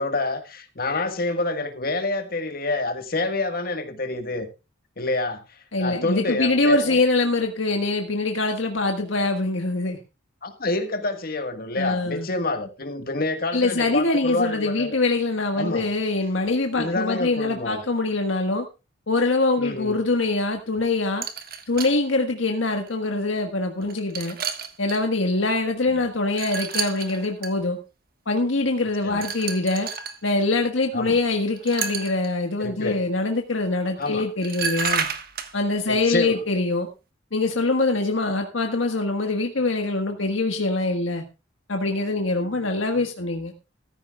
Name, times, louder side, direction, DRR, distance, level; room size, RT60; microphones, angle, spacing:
voice 1, 0.0-4.5 5.0-7.0 10.4-15.0 15.6-15.9 16.7-17.8 19.6-20.0 29.0-29.2 30.9-31.2 32.6-33.0 34.0-34.3 35.9-36.4, left 2 dB, 50° left, 7 dB, 1.6 m, -27 dB
voice 2, 5.7-10.0 11.8-12.3 13.5-18.6 19.1-21.2 21.7-24.4 24.8-27.8 28.3-29.9 30.2-35.1 35.5-36.9 37.3-41.2 41.7-43.5, left 2 dB, 75° left, 3 dB, 1.5 m, -24 dB
sound 1, 21.2-22.0 22.8-22.9 23.8-25.0 26.3-27.5 29.2-30.2 31.6-32.3 34.0-34.1 34.4-35.5, right 6 dB, 50° right, 1.4 m, -30 dB
14.5 x 14.0 x 2.4 m, 0.29 s
head